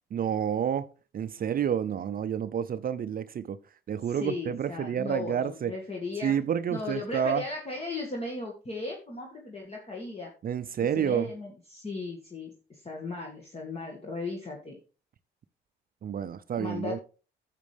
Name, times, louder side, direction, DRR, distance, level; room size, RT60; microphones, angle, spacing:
voice 1, 0.1-0.9 1.1-3.6 3.9-5.7 6.2-7.4 10.4-11.3 16.0-17.0, right 8 dB, 45° right, 0.5 m, -29 dB
voice 2, 4.0-6.3 6.7-10.3 10.8-14.8 16.6-17.0, left 3 dB, 30° left, 2.1 m, -36 dB
10.5 x 7.4 x 3.4 m
cardioid pair, 90°, 20 cm